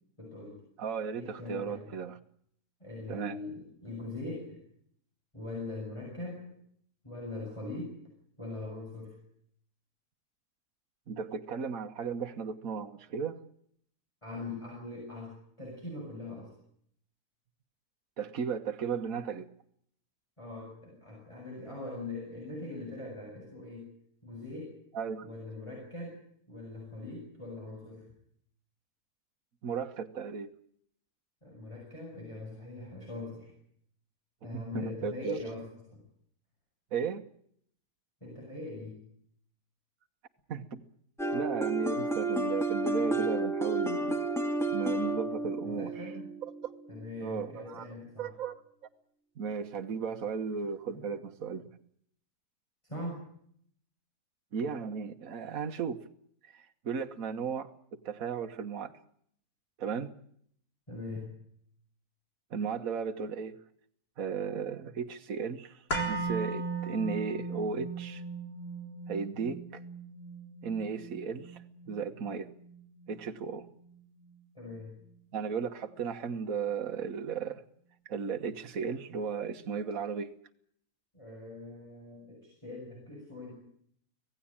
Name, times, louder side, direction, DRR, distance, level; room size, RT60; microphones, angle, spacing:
voice 1, 0.2-0.6 1.1-1.9 2.8-4.6 5.3-6.5 7.0-8.0 8.4-9.2 14.2-16.5 20.4-23.9 24.2-24.7 25.2-26.2 26.5-28.1 31.4-33.6 34.4-35.6 35.9-36.0 38.2-39.0 45.6-46.3 46.9-48.3 50.9-51.0 52.8-53.2 60.9-61.3 74.6-74.9 81.1-83.5, left 2 dB, 20° left, -1 dB, 7.4 m, -41 dB
voice 2, 0.8-2.1 3.1-3.4 11.1-13.4 18.2-19.5 24.9-25.3 29.6-30.5 34.5-35.4 36.9-37.2 40.5-40.8 41.3-44.2 44.7-46.1 46.4-46.7 47.2-47.9 48.2-48.6 49.4-51.7 54.5-56.0 56.5-57.7 58.1-58.9 59.8-60.1 62.5-63.6 64.2-68.2 69.1-69.8 70.6-72.5 73.1-73.7 75.3-77.6 78.1-80.3, right 6 dB, 60° right, 5 dB, 1.7 m, -35 dB
sound 1, 41.2-47.0, right 2 dB, ahead, 2.3 m, -31 dB
sound 2, 65.9-74.0 74.3-74.4, right 3 dB, 70° left, 4.6 m, -38 dB
26.0 x 17.5 x 8.8 m, 0.67 s
omnidirectional pair, 1.7 m